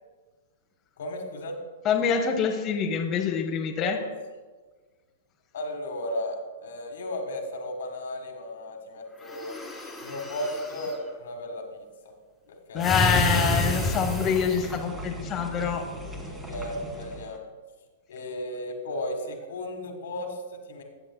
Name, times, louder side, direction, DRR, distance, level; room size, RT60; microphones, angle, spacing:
voice 1, 1.0-1.6 3.8-4.1 5.5-9.6 10.0-12.1 12.5-13.1 15.9-17.5 18.1-20.8, left 1 dB, 75° left, 4 dB, 1.6 m, -35 dB
voice 2, 1.8-4.0 12.7-15.8, left 7 dB, 30° left, 2 dB, 0.8 m, -26 dB
sound 1, 9.2-11.0 12.8-14.7, left 1 dB, 5° left, 1.8 m, -29 dB
sound 2, 12.8-17.4, right 1 dB, 15° right, 1.3 m, -39 dB
15.0 x 7.8 x 2.2 m, 1.4 s
hypercardioid pair, 135°, 0 cm